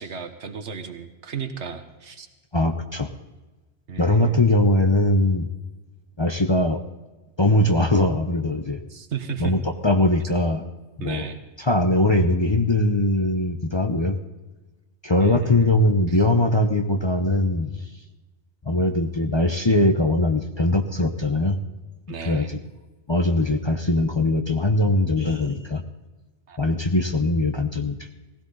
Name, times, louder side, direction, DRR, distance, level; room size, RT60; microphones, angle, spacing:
voice 1, 0.0-2.3 3.9-4.4 8.9-9.5 11.0-11.4 15.2-15.7 16.1-16.2 22.1-22.5 26.5-26.6, right 7 dB, 75° right, 8 dB, 1.5 m, -34 dB
voice 2, 2.5-3.1 4.0-5.5 6.2-6.8 7.4-8.8 9.4-10.6 11.0-11.3 11.6-14.2 15.0-17.7 18.7-21.6 22.3-22.6 23.1-25.8 26.6-28.0, left 1 dB, 25° left, 5 dB, 0.8 m, -21 dB
18.5 x 16.0 x 4.0 m, 1.2 s
omnidirectional pair, 1.2 m